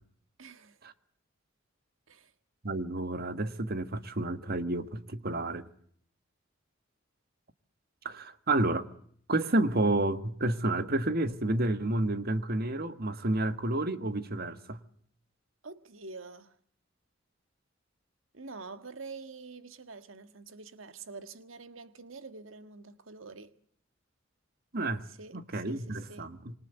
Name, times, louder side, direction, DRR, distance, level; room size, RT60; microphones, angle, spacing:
voice 1, 0.4-0.8 2.1-2.3 15.6-16.6 18.3-23.5 25.0-26.3, right 4 dB, 80° right, 1.5 m, -46 dB
voice 2, 2.6-5.7 8.0-8.8 9.3-14.8 24.7-25.0 25.3-26.5, right 2 dB, 50° right, 1.6 m, -30 dB
27.0 x 24.5 x 8.1 m
head